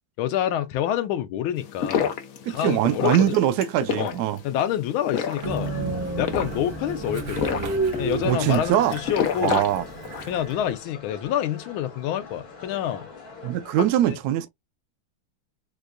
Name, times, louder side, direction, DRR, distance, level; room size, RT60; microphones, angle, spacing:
voice 1, 0.2-2.1 2.5-3.4 4.0-4.1 4.4-5.7 6.2-7.6 8.0-9.7 10.3-13.1 14.1-14.2, left 11 dB, 85° left, 1.4 m, -27 dB
sound 1, 1.6-10.4, left 7 dB, 70° left, 0.8 m, -30 dB
voice 2, 2.5-4.4 8.2-8.9 9.4-9.8 13.4-14.5, right 12 dB, 85° right, 0.8 m, -22 dB
sound 2, 5.1-13.9, left 4 dB, 50° left, 1.5 m, -43 dB
Train, 5.4-10.7, right 3 dB, 70° right, 1.8 m, -31 dB
4.6 x 2.2 x 2.4 m
omnidirectional pair, 2.2 m